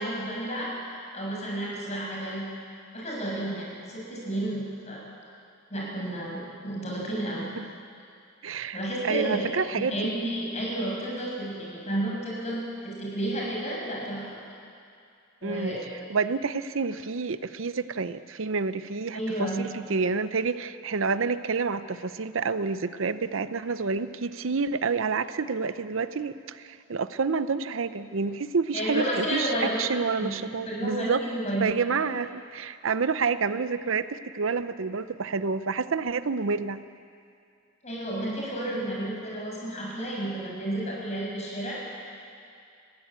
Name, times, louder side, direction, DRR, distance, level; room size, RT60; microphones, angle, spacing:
voice 1, 0.0-2.4 2.9-5.1 5.7-7.5 8.7-9.5 9.9-14.4 15.4-15.8 19.1-19.6 28.7-29.8 30.2-30.3 30.7-31.6 37.8-42.1, right 1 dB, 35° left, -4 dB, 6.7 m, -31 dB
voice 2, 8.4-8.8 9.0-10.0 15.4-15.7 16.1-31.2 31.6-36.8, right 4 dB, 80° right, 13 dB, 0.7 m, -28 dB
20.5 x 15.5 x 8.9 m, 2.4 s
head